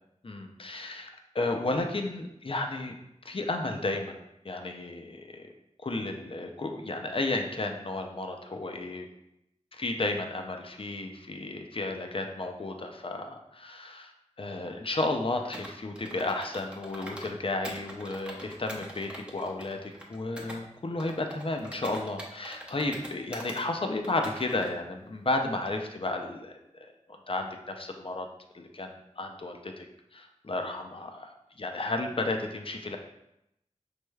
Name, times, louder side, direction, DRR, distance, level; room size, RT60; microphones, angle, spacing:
voice 1, 0.2-2.9 3.2-4.2 4.4-5.5 5.8-9.1 9.8-14.1 14.4-26.9 27.3-28.3 28.5-29.9 30.1-33.0, left 2 dB, 45° left, 4 dB, 0.5 m, -33 dB
Computer keyboard, 15.5-17.3 17.6-20.6 21.0-23.6 24.0-24.7, equal, 10° right, 0.7 m, -44 dB
5.1 x 3.2 x 2.3 m, 0.83 s
wide cardioid pair, 45°, 13 cm